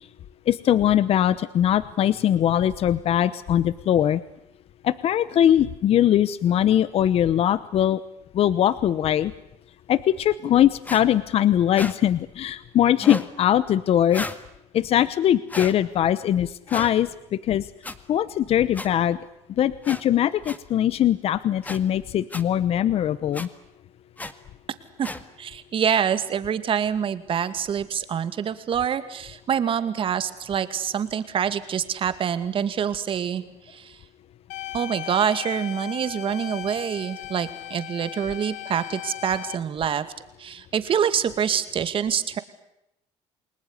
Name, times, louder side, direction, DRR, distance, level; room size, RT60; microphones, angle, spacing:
voice 1, 0.5-4.2 4.8-8.0 8.3-9.3 9.9-14.2 14.7-17.7 18.1-19.2 19.6-23.5, left 11 dB, 55° left, 16 dB, 0.9 m, -21 dB
sound 1, 10.8-11.0 11.7-11.9 13.0-13.3 14.1-14.4 15.5-15.7 16.7-16.9 17.8-17.9 18.7-18.9 19.8-20.0 20.4-20.6 21.6-21.8 22.3-22.4 23.3-23.5 24.2-24.3 25.0-25.2, left 2 dB, 15° left, 1.9 m, -33 dB
voice 2, 25.4-34.0 34.7-40.1 40.4-42.4, right 8 dB, 45° right, 11 dB, 2.3 m, -26 dB
sound 2, 34.5-39.5, left 14 dB, 80° left, 1.8 m, -37 dB
29.0 x 20.0 x 9.8 m, 0.85 s
cardioid pair, 110°, 12 cm